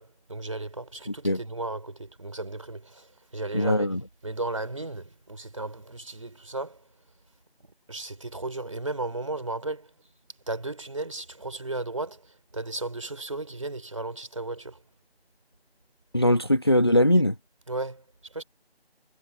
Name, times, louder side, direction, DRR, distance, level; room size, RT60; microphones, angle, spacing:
voice 1, 0.0-4.0 4.2-6.8 7.9-9.9 10.5-14.8 17.7-18.0 18.3-18.4, right 2 dB, 30° right, 3.8 m, -35 dB
voice 2, 3.5-4.0 16.1-17.3, left 1 dB, 25° left, 1.5 m, -21 dB
figure-of-eight pair, 170°, 32 cm